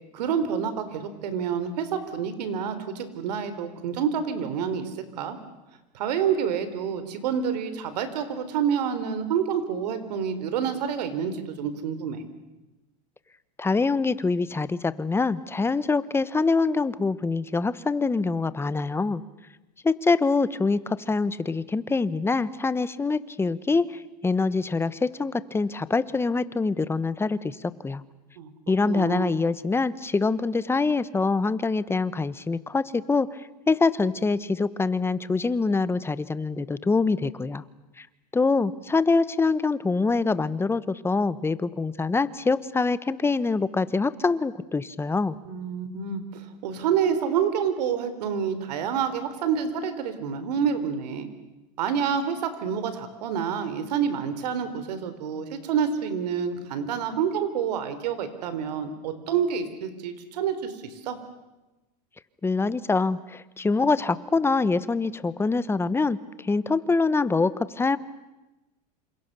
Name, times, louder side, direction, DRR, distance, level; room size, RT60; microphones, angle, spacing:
voice 1, 0.1-5.4 5.9-12.2 28.4-28.5 28.9-29.3 45.5-51.3 51.8-61.2, right 7 dB, 80° right, 11 dB, 4.0 m, -28 dB
voice 2, 13.6-19.2 19.8-28.0 28.7-33.3 33.7-37.6 38.0-38.1 38.3-45.4 62.4-68.0, left 3 dB, 10° left, 16 dB, 1.1 m, -25 dB
28.5 x 27.0 x 6.9 m, 1.1 s
supercardioid pair, 120°, 21 cm